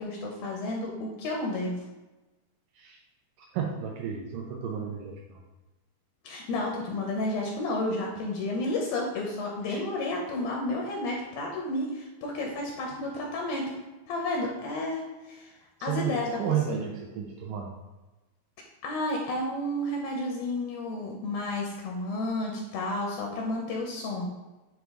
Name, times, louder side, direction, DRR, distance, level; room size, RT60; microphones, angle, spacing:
voice 1, 0.0-1.8 6.2-13.7 14.1-16.3 16.7-16.8 18.8-24.3, left 2 dB, 75° left, -1 dB, 2.4 m, -31 dB
voice 2, 3.4-5.4 9.7-9.8 15.8-17.7, right 8 dB, 90° right, 0 dB, 1.9 m, -32 dB
9.0 x 3.7 x 3.7 m, 1.1 s
omnidirectional pair, 4.7 m